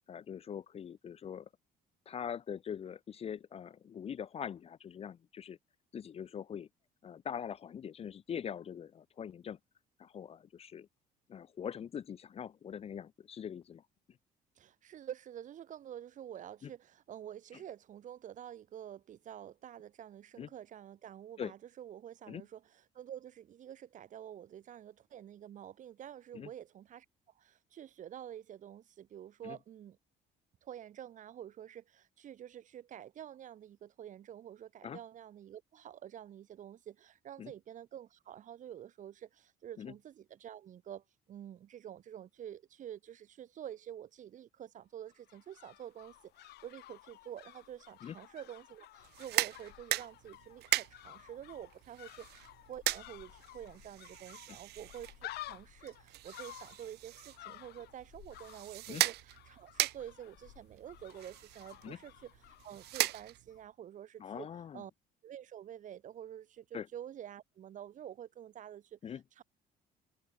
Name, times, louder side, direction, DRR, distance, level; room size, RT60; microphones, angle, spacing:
voice 1, 0.0-1.5 2.1-5.6 5.9-6.7 7.0-9.6 10.0-10.9 11.3-13.8 16.6-16.7 20.4-20.5 21.4-21.5 22.3-22.4 26.3-26.5 29.4-29.6 34.8-35.0 37.4-37.5 39.8-39.9 48.0-48.1 58.9-59.0 61.8-62.0 64.2-64.8 66.7-66.9 69.0-69.2, left 8 dB, 35° left, 0.6 m, -42 dB
voice 2, 14.6-27.1 27.3-30.0 30.6-64.5 64.7-64.9 65.2-69.4, right 10 dB, 50° right, 0.8 m, -48 dB
sound 1, 45.1-63.3 63.5-63.6, left 16 dB, 75° left, 1.1 m, -53 dB
sound 2, 49.0-63.7, right 17 dB, 80° right, 0.8 m, -39 dB
cardioid pair, 110°, 17 cm